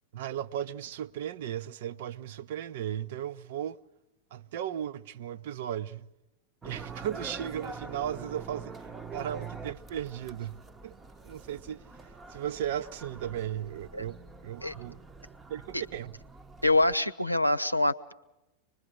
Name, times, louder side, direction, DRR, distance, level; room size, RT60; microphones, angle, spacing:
voice 1, 0.1-3.8 4.3-6.1 6.6-8.9 9.1-10.9 11.2-11.8 12.3-15.0 15.5-16.1, right 10 dB, 55° right, 0.7 m, -36 dB
sound 1, 6.6-17.0, right 4 dB, 15° right, 0.9 m, -45 dB
voice 2, 16.6-18.1, left 2 dB, 90° left, 0.7 m, -25 dB
25.0 x 21.0 x 6.5 m
figure-of-eight pair, 90°, 0 cm